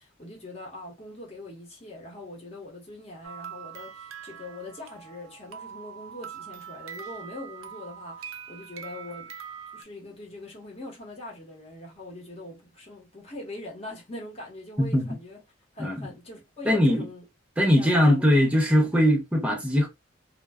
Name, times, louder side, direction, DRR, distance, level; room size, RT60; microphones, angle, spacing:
voice 1, 0.0-9.3 9.7-15.4 15.7-17.2 17.8-18.2, left 1 dB, 30° left, 0.9 m, -42 dB
sound 1, 3.2-9.8, right 7 dB, 85° right, 0.5 m, -42 dB
voice 2, 14.8-15.1 15.8-16.1 16.6-17.1 17.6-19.9, equal, 5° right, 0.6 m, -21 dB
2.2 x 2.1 x 3.4 m
head